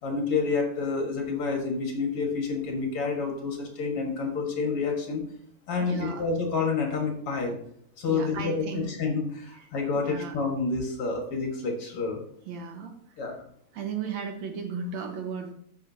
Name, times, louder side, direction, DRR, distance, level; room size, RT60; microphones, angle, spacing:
voice 1, 0.0-5.2 5.7-7.6 8.0-12.2 13.2-13.4, left 4 dB, 55° left, 1 dB, 2.3 m, -29 dB
voice 2, 5.8-6.2 8.1-8.9 9.6-9.7 10.0-10.4 12.5-12.9 13.7-15.5, right 5 dB, 65° right, 3 dB, 2.3 m, -35 dB
14.0 x 5.7 x 2.7 m, 0.67 s
omnidirectional pair, 3.4 m